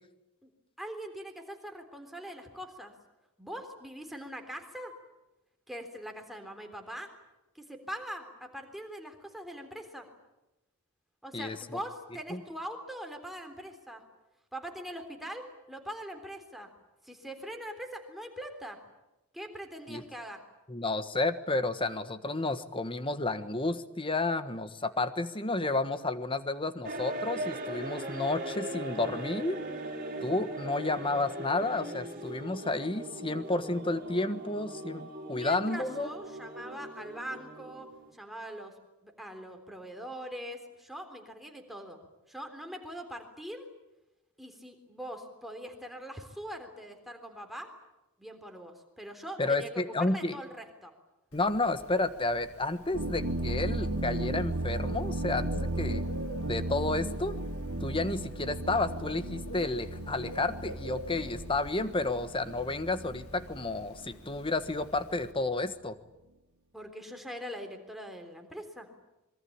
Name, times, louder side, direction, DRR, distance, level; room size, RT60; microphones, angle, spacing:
voice 1, 0.8-2.9 3.4-4.9 5.7-7.1 7.6-10.1 11.2-14.0 14.5-16.7 17.0-18.8 19.3-20.4 35.3-37.9 38.1-38.7 39.0-42.0 42.3-43.7 44.4-47.7 48.2-50.9 66.7-68.9, equal, ahead, 4 dB, 3.6 m, -42 dB
voice 2, 20.7-29.6 30.2-36.1 49.4-50.4 51.3-56.0 56.4-57.3 57.8-66.0, left 2 dB, 25° left, 11 dB, 1.3 m, -31 dB
sound 1, 26.8-38.1, right 1 dB, 40° right, 3.8 m, -40 dB
Bird, 51.3-65.3, left 1 dB, 80° left, 2.2 m, -49 dB
sound 2, 52.9-65.3, right 1 dB, 70° right, 1.8 m, -35 dB
26.5 x 23.0 x 8.7 m, 0.97 s
head